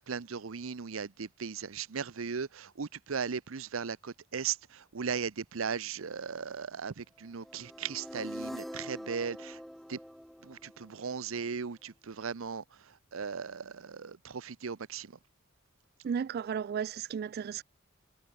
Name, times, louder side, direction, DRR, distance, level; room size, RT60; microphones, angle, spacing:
voice 1, 0.0-9.6 9.9-10.0 10.4-12.6 13.1-15.1, right 6 dB, 80° right, 0.7 m, -37 dB
sound 1, 7.4-11.5, equal, ahead, 1.5 m, -44 dB
voice 2, 16.0-17.6, right 7 dB, 50° right, 0.3 m, -34 dB
head